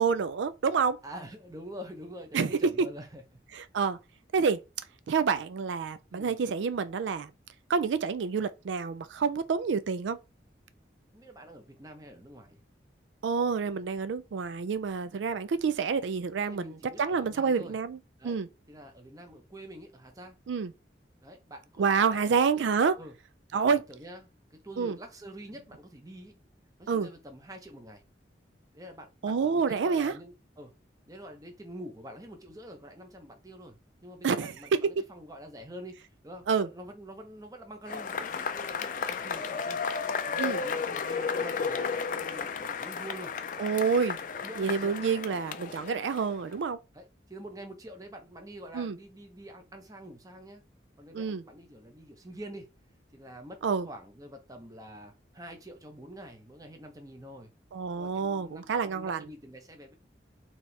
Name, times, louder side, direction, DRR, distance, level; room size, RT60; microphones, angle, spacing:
voice 1, 0.0-1.0 2.3-2.9 3.5-4.0 4.3-4.6 5.1-7.3 7.7-10.2 13.2-18.0 18.2-18.5 20.5-20.7 21.8-23.0 23.5-23.8 24.8-25.0 26.9-27.1 29.2-30.1 34.2-35.0 36.5-36.7 40.4-40.6 43.6-44.2 44.6-46.8 48.7-49.0 51.1-51.4 53.6-53.9 57.7-59.2, right 5 dB, 80° right, 0.4 m, -28 dB
voice 2, 1.0-3.2 6.1-6.4 11.1-12.6 16.4-17.8 18.2-18.4 18.7-20.4 21.2-22.4 23.0-23.1 23.5-26.4 26.8-28.0 28.7-30.7 31.1-36.0 36.2-39.8 40.3-43.3 44.4-45.0 46.9-50.6 51.0-52.7 53.1-57.5 57.9-59.9, equal, 20° right, 0.8 m, -46 dB
Cheering / Applause / Crowd, 37.9-46.5, left 5 dB, 45° left, 0.4 m, -33 dB
4.3 x 2.9 x 3.3 m
head